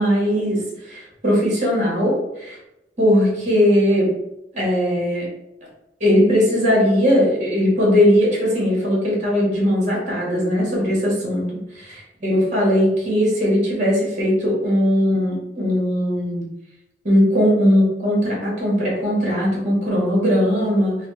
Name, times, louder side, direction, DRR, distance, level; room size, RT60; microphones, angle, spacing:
voice 1, 0.0-2.6 3.0-4.1 4.5-5.3 6.0-11.4 12.2-16.4 17.0-21.0, equal, 45° right, -4 dB, 1.3 m, -19 dB
3.5 x 2.2 x 3.9 m, 0.90 s
head